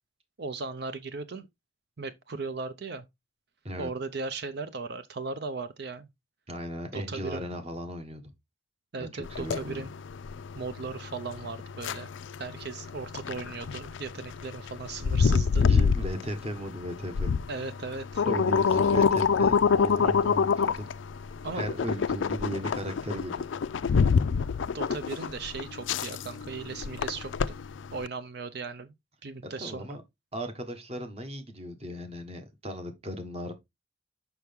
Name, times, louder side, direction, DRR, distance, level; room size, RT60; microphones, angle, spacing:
voice 1, 0.4-1.5 2.0-3.0 3.8-6.1 6.9-7.5 8.9-9.9 10.6-12.1 12.4-15.7 17.5-18.2 21.4-21.6 24.7-27.5 27.9-28.9 29.2-30.0, right 4 dB, 55° right, 0.6 m, -37 dB
voice 2, 6.5-8.3 9.0-9.9 15.6-17.4 18.2-20.9 21.5-23.6 29.6-30.0 30.3-33.5, equal, 30° right, 1.2 m, -36 dB
sound 1, 9.2-28.1, left 5 dB, 70° left, 0.4 m, -27 dB
6.1 x 5.7 x 3.5 m
head